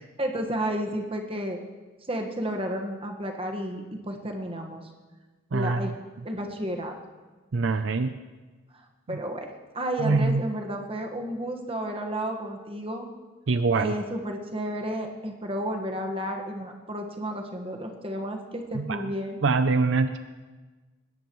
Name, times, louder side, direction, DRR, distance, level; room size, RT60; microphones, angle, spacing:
voice 1, 0.2-1.6 2.1-4.8 5.5-5.9 6.2-6.9 9.1-9.5 9.7-13.1 13.7-19.4, right 1 dB, 25° right, 2 dB, 1.5 m, -32 dB
voice 2, 5.5-5.8 7.5-8.1 10.0-10.4 13.5-13.9 18.8-19.0 19.4-20.2, right 4 dB, 65° right, 10 dB, 0.5 m, -24 dB
20.5 x 17.0 x 3.1 m, 1.3 s
head